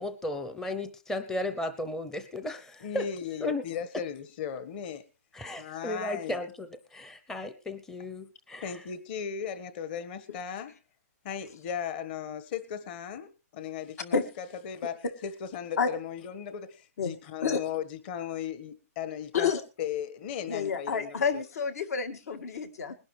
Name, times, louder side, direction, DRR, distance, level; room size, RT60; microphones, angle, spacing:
voice 1, 0.0-3.1 3.4-3.6 5.3-8.8, left 1 dB, 5° left, 9 dB, 0.7 m, -35 dB
voice 2, 2.8-5.0 5.6-6.4 8.6-10.7 11.2-19.5 19.8-21.4, left 8 dB, 40° left, 12 dB, 1.5 m, -37 dB
voice 3, 20.5-23.0, left 5 dB, 70° left, 7 dB, 2.1 m, -29 dB
20.5 x 11.5 x 3.3 m, 0.32 s
hypercardioid pair, 155°, 9 cm